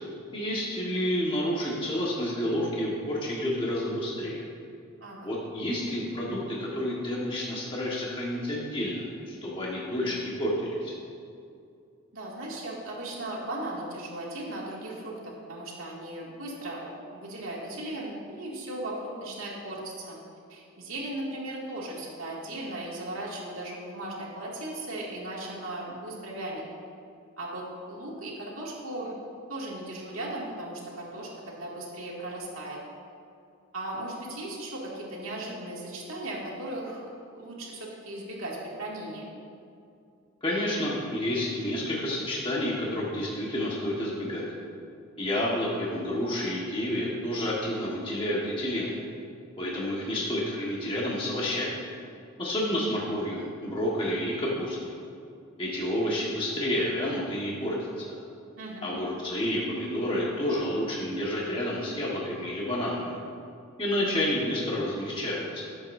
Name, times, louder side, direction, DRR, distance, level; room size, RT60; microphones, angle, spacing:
voice 1, 0.3-4.4 5.2-10.9 40.4-44.4 45.2-48.9 49.6-51.8 52.4-55.0 55.6-58.1 58.8-63.2 63.8-65.7, left 1 dB, 25° left, -5 dB, 1.6 m, -30 dB
voice 2, 12.1-20.2 20.5-26.6 27.4-29.1 29.5-32.8 33.7-37.0 37.3-39.3 58.6-58.9, right 1 dB, 70° right, -4 dB, 2.4 m, -37 dB
18.5 x 7.9 x 2.7 m, 2.4 s
head